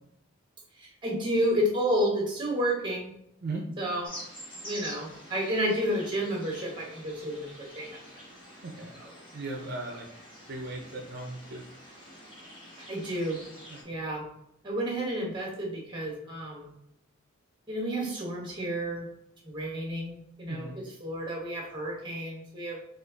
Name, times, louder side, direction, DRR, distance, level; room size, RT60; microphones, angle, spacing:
voice 1, 0.8-3.1 3.8-4.1 4.6-8.0 9.0-9.1 12.9-13.4 13.8-14.2 14.6-16.7 17.7-19.1 19.4-20.7 21.0-22.8, equal, 25° right, -1 dB, 1.2 m, -31 dB
sound 1, 4.0-13.8, equal, 25° left, 1.6 m, -47 dB
voice 2, 9.3-10.1 10.5-11.6 13.7-13.8 20.5-20.8, right 2 dB, 55° right, 1 dB, 0.5 m, -37 dB
5.0 x 2.4 x 3.8 m, 0.80 s
head